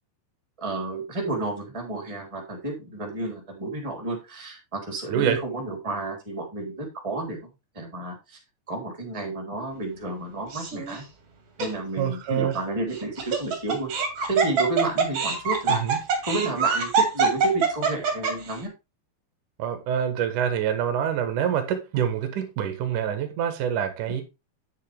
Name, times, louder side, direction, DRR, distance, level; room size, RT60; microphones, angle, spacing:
voice 1, 0.6-7.5 7.7-8.4 8.7-11.0 11.6-13.9 14.3-15.8 16.2-18.7, right 2 dB, 10° right, 3.0 m, -31 dB
voice 2, 5.1-5.4 12.0-12.6 15.7-16.0 19.6-24.2, right 9 dB, 60° right, 2.3 m, -26 dB
Laughter, 10.5-11.0 11.6-11.7 12.9-18.5, right 5 dB, 40° right, 2.7 m, -24 dB
9.6 x 7.5 x 3.5 m
omnidirectional pair, 5.3 m